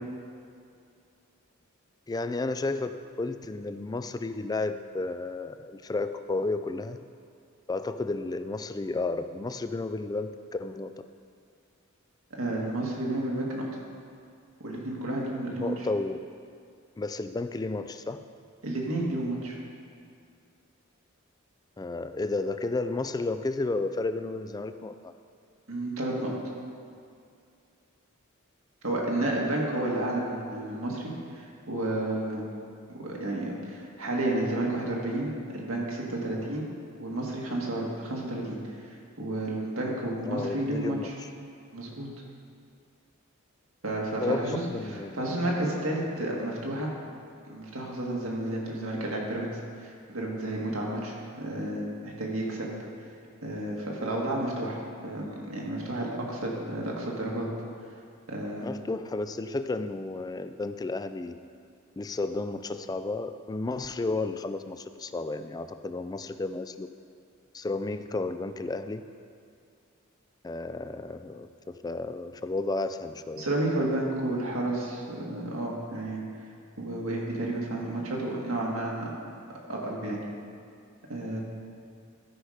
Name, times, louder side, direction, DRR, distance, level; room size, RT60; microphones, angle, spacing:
voice 1, 2.1-7.0 7.7-10.9 15.6-16.2 17.0-18.3 21.8-25.1 40.2-41.3 44.2-45.4 58.6-61.4 62.0-66.9 67.5-69.0 70.4-73.5, left 3 dB, 20° left, 10 dB, 0.3 m, -32 dB
voice 2, 12.3-13.7 14.6-15.7 18.6-19.6 25.7-26.3 28.8-32.4 32.9-36.7 37.0-38.6 39.2-41.1 41.7-42.1 43.8-44.6 44.9-46.9 47.5-49.5 49.8-52.7 53.4-54.8 55.0-57.5 58.3-58.7 73.4-76.2 76.8-79.1 79.7-80.2 81.1-81.4, right 1 dB, 80° right, -2 dB, 1.9 m, -31 dB
13.0 x 5.6 x 5.0 m, 2.4 s
head